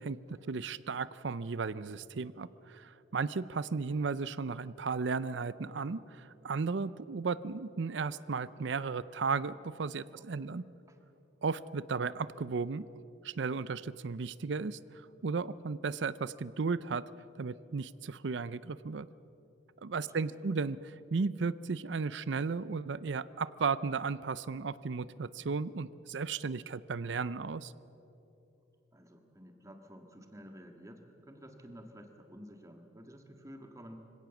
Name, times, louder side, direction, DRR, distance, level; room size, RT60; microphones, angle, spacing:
voice 1, 0.0-10.6 11.4-12.9 13.2-14.8 15.2-17.0 17.4-19.1 19.8-27.7, right 4 dB, 70° right, 17 dB, 0.5 m, -35 dB
voice 2, 10.1-10.6 10.9-11.0 20.0-20.5 28.9-34.0, equal, 15° right, 5 dB, 1.7 m, -52 dB
24.5 x 17.0 x 7.2 m, 2.8 s
head